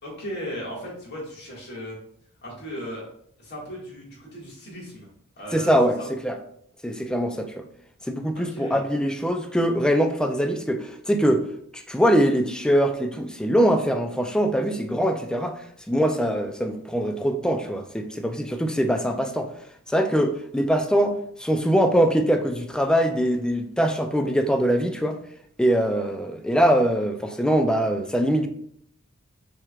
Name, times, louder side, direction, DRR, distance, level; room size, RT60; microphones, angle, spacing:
voice 1, 0.0-2.0 2.4-3.0 3.4-5.1 5.4-6.1 8.3-8.8 16.2-16.3, equal, 50° left, -3 dB, 1.8 m, -36 dB
voice 2, 5.5-6.0 6.2-6.4 6.8-7.5 8.1-11.4 11.7-15.6 15.9-19.5 19.9-25.2 25.6-28.5, equal, 5° left, 6 dB, 0.3 m, -22 dB
5.9 x 3.4 x 2.4 m, 0.67 s
head